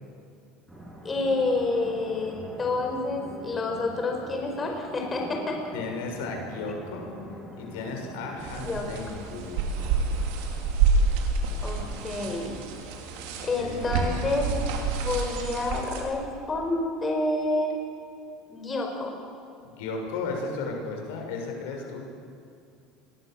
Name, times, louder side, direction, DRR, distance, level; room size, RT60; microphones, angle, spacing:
sound 1, 0.7-8.7, right 1 dB, 5° right, 7.8 m, -44 dB
voice 1, 1.0-5.6 8.6-8.9 11.6-12.6 13.4-14.5 15.0-17.7 18.5-19.2, left 2 dB, 20° left, 1 dB, 5.1 m, -28 dB
voice 2, 5.7-7.1 7.6-9.8 11.6-12.4 13.6-14.0 19.6-22.1, left 3 dB, 85° left, 2 dB, 6.9 m, -35 dB
sound 2, 8.4-16.0, right 4 dB, 80° right, 5.0 m, -28 dB
28.5 x 22.0 x 7.9 m, 2.4 s
supercardioid pair, 135°, 0 cm